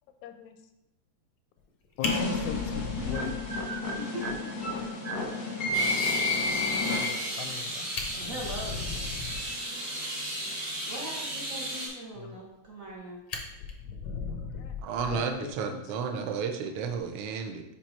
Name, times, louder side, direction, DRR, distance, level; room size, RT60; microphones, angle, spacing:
voice 1, 0.2-0.6 2.0-3.4 6.9-8.6 12.2-12.4 14.6-14.8 15.1-16.0, left 7 dB, 90° left, 7 dB, 2.0 m, -39 dB
Fire, 1.6-1.7 2.0-3.9 4.3-4.4 4.8-4.9 5.2-5.3 7.5-7.6 7.8-9.6 12.4-12.9 13.3-15.5 16.8-17.0, left 5 dB, 65° left, 1.2 m, -37 dB
sound 1, 2.0-7.5, left 2 dB, 45° left, 1.3 m, -30 dB
voice 2, 3.0-3.3 3.9-4.0 8.2-9.0 10.9-13.2, right 1 dB, 40° right, -3 dB, 1.2 m, -41 dB
sound 2, 5.7-11.9, right 1 dB, 10° right, 2.1 m, -35 dB
voice 3, 14.8-17.6, right 6 dB, 75° right, 6 dB, 1.3 m, -32 dB
5.4 x 5.1 x 4.4 m, 0.91 s
omnidirectional pair, 3.3 m